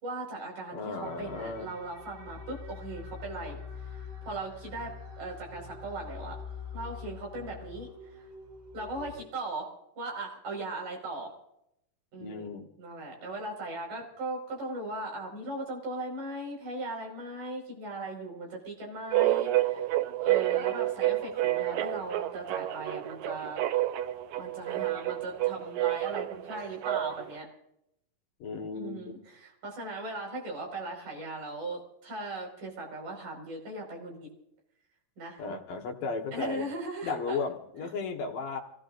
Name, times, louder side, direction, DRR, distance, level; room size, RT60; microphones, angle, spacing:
voice 1, 0.0-6.4 6.7-8.3 8.7-9.7 10.0-11.4 12.1-19.9 20.2-23.6 24.3-27.5 28.7-34.3 35.2-35.4 36.3-37.4, right 2 dB, 60° right, -1 dB, 6.7 m, -38 dB
voice 2, 0.7-1.7 12.2-12.7 28.4-29.0 35.4-36.6 37.0-38.6, left 4 dB, 65° left, 2 dB, 3.0 m, -35 dB
sound 1, 1.0-9.2, left 5 dB, 45° right, 4.0 m, -44 dB
sound 2, 19.1-27.3, right 14 dB, 85° right, 1.7 m, -29 dB
29.0 x 17.0 x 2.6 m, 0.78 s
omnidirectional pair, 4.3 m